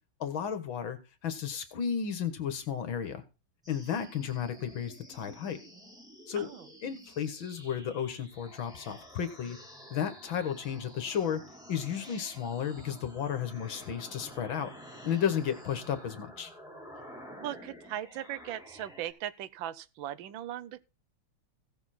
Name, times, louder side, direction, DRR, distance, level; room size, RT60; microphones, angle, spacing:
voice 1, 0.2-3.2 3.7-5.6 6.3-6.5 6.8-9.6 9.9-11.4 11.7-14.7 15.0-16.5, left 8 dB, 70° left, 2.2 m, -33 dB
sound 1, 3.6-19.1, equal, ahead, 4.1 m, -50 dB
voice 2, 17.4-20.8, right 12 dB, 70° right, 1.5 m, -39 dB
16.5 x 7.1 x 4.3 m
omnidirectional pair, 2.2 m